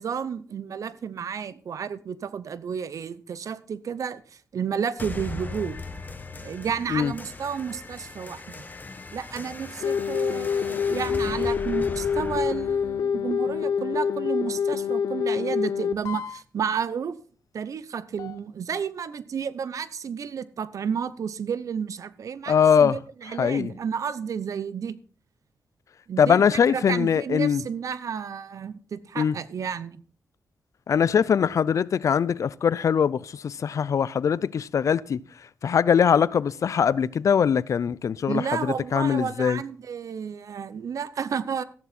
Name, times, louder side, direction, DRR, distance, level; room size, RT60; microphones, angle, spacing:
voice 1, 0.0-4.2 4.5-5.8 6.4-8.6 9.1-17.1 17.5-25.0 26.1-30.0 38.3-41.6, right 7 dB, 70° right, 0.8 m, -31 dB
sound 1, 5.0-14.0, left 3 dB, 30° left, 1.5 m, -39 dB
sound 2, 9.8-16.4 18.2-18.3, left 7 dB, 85° left, 0.9 m, -26 dB
voice 2, 22.5-23.0 23.4-23.7 26.2-27.6 29.2-29.4 30.9-35.2 35.6-39.6, left 7 dB, 65° left, 0.5 m, -22 dB
14.0 x 11.0 x 4.3 m
cardioid pair, 90°, 6 cm